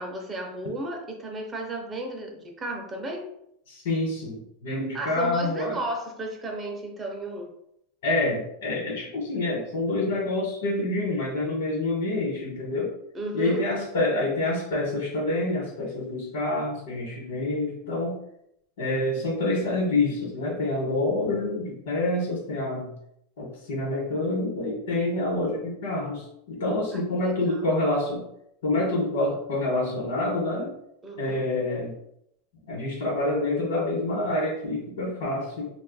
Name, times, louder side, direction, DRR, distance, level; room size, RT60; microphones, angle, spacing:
voice 1, 0.0-3.3 4.9-7.5 13.1-13.6 27.2-27.7 31.0-31.4, right 1 dB, 10° right, 2 dB, 0.4 m, -33 dB
voice 2, 3.7-5.8 8.0-12.9 13.3-18.2 18.8-22.9 23.4-28.2 28.6-30.7 31.2-32.0 32.7-35.7, left 2 dB, 75° left, -3 dB, 1.1 m, -27 dB
2.6 x 2.3 x 3.9 m, 0.76 s
supercardioid pair, 175°, 0 cm